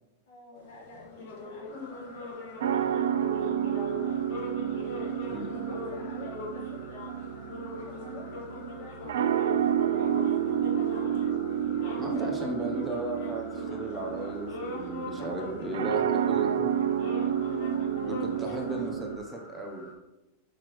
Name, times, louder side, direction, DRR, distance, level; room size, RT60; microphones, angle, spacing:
voice 1, 0.3-3.5 4.8-10.3 10.6-12.4 15.2-18.1 18.4-19.1, left 2 dB, 70° left, -2 dB, 2.2 m, -50 dB
sound 1, 0.6-18.9, left 3 dB, 55° left, 1.6 m, -42 dB
Cicada-Brood X, 1.7-19.9, left 3 dB, 15° left, 2.4 m, -52 dB
sound 2, 2.6-19.2, right 9 dB, 85° right, 0.4 m, -30 dB
voice 2, 12.0-16.7 18.1-19.9, right 1 dB, 10° right, 2 dB, 0.7 m, -35 dB
6.4 x 6.0 x 3.0 m, 1.0 s
supercardioid pair, 170°, 0 cm